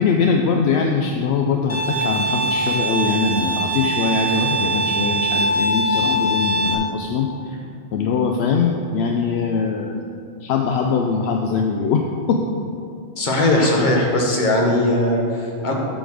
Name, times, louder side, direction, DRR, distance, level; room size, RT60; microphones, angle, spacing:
voice 1, 0.0-7.6 7.9-10.0 10.4-12.0 12.3-12.4 13.5-13.7, left 5 dB, 75° left, 2 dB, 0.8 m, -22 dB
Bowed string instrument, 1.7-6.8, right 1 dB, 15° left, 0.6 m, -22 dB
voice 2, 13.2-15.7, left 1 dB, 45° left, -1 dB, 1.3 m, -19 dB
8.1 x 4.3 x 6.0 m, 2.4 s
omnidirectional pair, 1.1 m